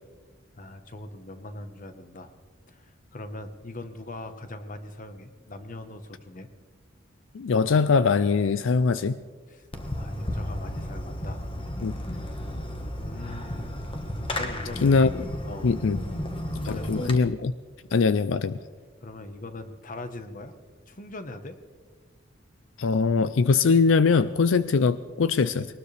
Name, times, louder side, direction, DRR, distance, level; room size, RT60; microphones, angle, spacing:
voice 1, 0.6-2.3 2.7-6.5 9.5-9.7 9.9-11.4 11.9-12.2 13.0-13.8 14.3-15.0 15.4-15.8 16.6-17.1 19.0-20.5 20.9-21.6, left 2 dB, 45° left, 8 dB, 1.2 m, -41 dB
voice 2, 7.3-9.2 11.8-11.9 14.8-15.1 15.6-16.0 16.6-17.5 17.9-18.6 22.8-25.7, left 4 dB, 80° left, 14 dB, 0.5 m, -22 dB
Fireworks, 9.7-17.2, left 1 dB, 30° left, 1.4 m, -33 dB
22.0 x 19.5 x 3.4 m, 1.5 s
head